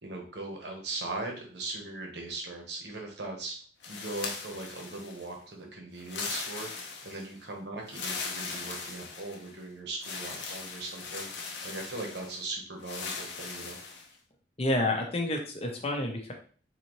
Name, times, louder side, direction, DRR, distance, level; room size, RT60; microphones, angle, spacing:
voice 1, 0.0-3.6 3.9-11.3 11.6-13.8, right 2 dB, 60° right, 1 dB, 1.0 m, -39 dB
sound 1, 3.8-5.3 6.0-7.3 7.9-9.5 10.0-12.4 12.8-14.1, left 4 dB, 65° left, 0.7 m, -39 dB
voice 2, 14.6-16.3, left 1 dB, 30° left, 2 dB, 0.7 m, -29 dB
4.0 x 2.8 x 3.0 m, 0.42 s
head